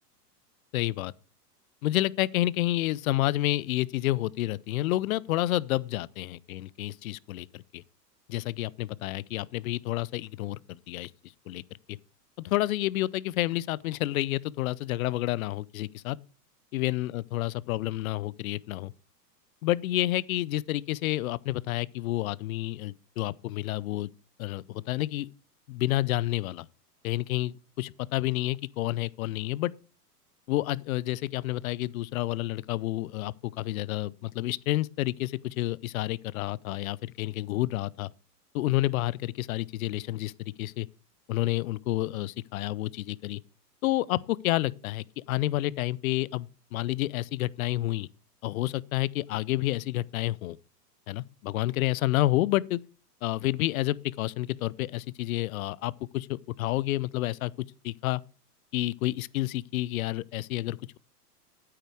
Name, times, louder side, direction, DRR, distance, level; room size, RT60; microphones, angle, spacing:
voice 1, 0.7-1.1 1.8-7.8 8.3-11.1 11.5-11.6 12.4-16.2 16.7-18.9 19.6-24.1 24.4-25.3 25.7-26.7 27.0-29.7 30.5-38.1 38.5-40.9 41.3-43.4 43.8-48.1 48.4-50.6 51.1-52.8 53.2-58.2 58.7-61.0, left 16 dB, 60° left, 0.6 m, -29 dB
9.4 x 8.8 x 4.7 m
hypercardioid pair, 110°, 48 cm